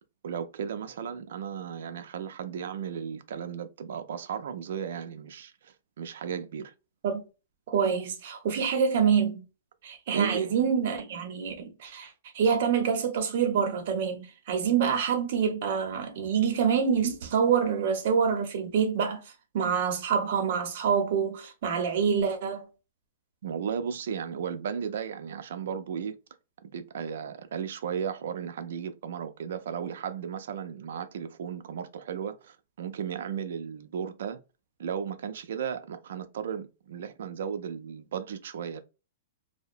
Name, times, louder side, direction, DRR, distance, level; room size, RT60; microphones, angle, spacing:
voice 1, 0.2-6.7 10.1-10.6 23.4-26.2 26.6-34.4 34.8-38.8, right 7 dB, 70° right, 0.4 m, -35 dB
voice 2, 7.7-9.4 9.8-22.7, right 7 dB, 55° right, 0.8 m, -26 dB
2.7 x 2.1 x 2.5 m
hypercardioid pair, 155°, 0 cm